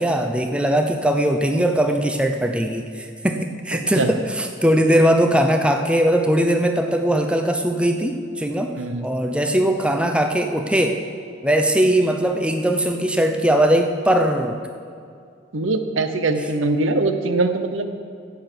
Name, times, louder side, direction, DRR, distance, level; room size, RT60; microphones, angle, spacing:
voice 1, 0.0-8.7 9.0-11.0 11.4-14.6, right 1 dB, 5° right, 5 dB, 0.6 m, -20 dB
voice 2, 3.7-4.1 8.8-9.1 9.5-9.6 15.5-17.9, right 2 dB, 85° right, 8 dB, 0.8 m, -22 dB
10.5 x 8.2 x 6.8 m, 2.3 s
head